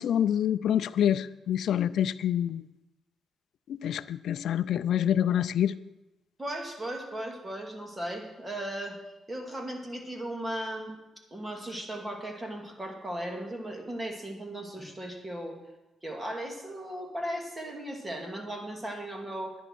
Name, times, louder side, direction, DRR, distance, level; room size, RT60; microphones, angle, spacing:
voice 1, 0.0-2.6 3.7-5.7, left 10 dB, 75° left, 15 dB, 0.4 m, -26 dB
voice 2, 6.4-9.0 9.3-10.9 11.3-15.6 16.0-19.6, right 1 dB, 15° right, 2 dB, 2.6 m, -37 dB
11.0 x 10.0 x 6.2 m, 1.0 s
cardioid pair, 100°, 0 cm